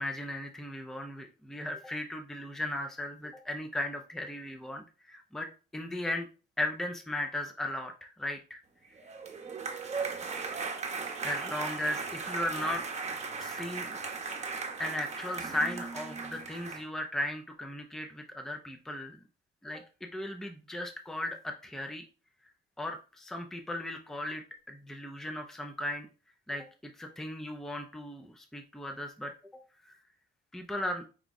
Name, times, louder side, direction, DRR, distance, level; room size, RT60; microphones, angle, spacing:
voice 1, 0.0-6.3 6.6-8.6 11.0-12.9 13.4-14.0 14.8-19.2 19.6-22.0 22.8-26.1 26.5-29.3 29.9-30.0 30.5-31.0, left 1 dB, ahead, 3 dB, 0.5 m, -36 dB
sound 1, 9.0-16.8, right 4 dB, 35° right, 0.9 m, -37 dB
4.8 x 2.3 x 4.0 m, 0.34 s
cardioid pair, 90°, 20 cm